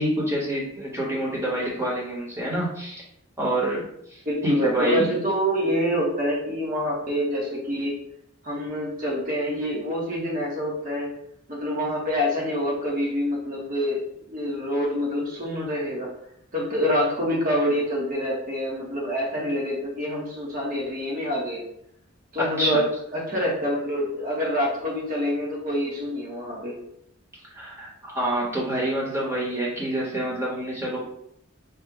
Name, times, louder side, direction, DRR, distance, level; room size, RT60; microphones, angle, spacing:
voice 1, 0.0-3.0 3.4-5.1 22.4-22.8 27.5-31.0, right 1 dB, 10° right, -5 dB, 1.2 m, -27 dB
voice 2, 4.2-8.0 8.4-11.1 11.5-14.0 14.3-16.1 16.5-21.7 22.3-22.8 23.1-26.8, equal, 40° right, -3 dB, 1.3 m, -26 dB
4.3 x 2.4 x 3.8 m, 0.74 s
head